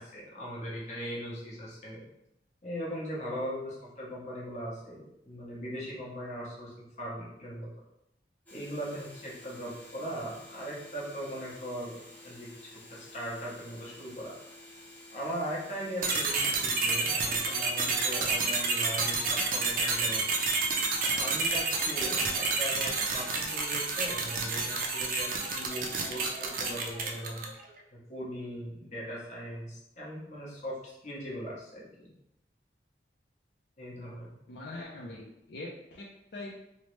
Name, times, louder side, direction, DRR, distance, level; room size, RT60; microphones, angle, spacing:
voice 1, 0.0-2.0 2.6-7.7 8.5-12.0 12.2-14.3 15.1-20.6 21.1-27.4 27.9-32.1 33.8-34.3, equal, 40° left, -5 dB, 0.8 m, -39 dB
sound 1, 8.5-23.7, left 1 dB, 10° left, 0.5 m, -51 dB
sound 2, 16.0-27.6, right 4 dB, 50° right, 0.4 m, -29 dB
voice 2, 34.5-36.6, left 2 dB, 65° left, -4 dB, 0.4 m, -43 dB
3.1 x 2.0 x 3.0 m, 0.84 s
head